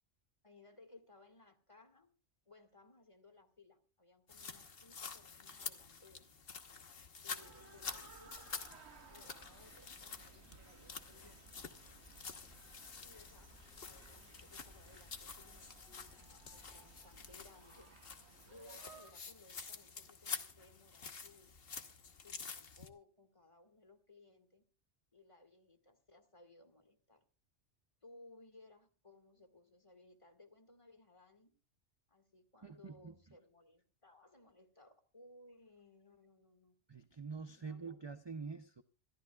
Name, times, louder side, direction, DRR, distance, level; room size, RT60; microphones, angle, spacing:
voice 1, 0.4-2.1 2.5-6.3 7.2-8.5 9.1-11.5 13.0-13.6 13.9-18.0 18.5-21.6 22.2-24.7 25.1-27.2 28.0-31.5 32.1-36.8 37.6-38.0, left 2 dB, 25° left, 2.0 m, -62 dB
sound 1, 4.3-22.9, left 5 dB, 55° left, 1.4 m, -49 dB
sound 2, 7.3-19.1, right 4 dB, 65° right, 1.8 m, -60 dB
sound 3, 7.8-17.6, right 1 dB, 5° left, 1.0 m, -65 dB
voice 2, 32.6-33.1 36.9-38.8, right 5 dB, 30° right, 0.5 m, -46 dB
26.0 x 13.0 x 2.3 m
omnidirectional pair, 1.2 m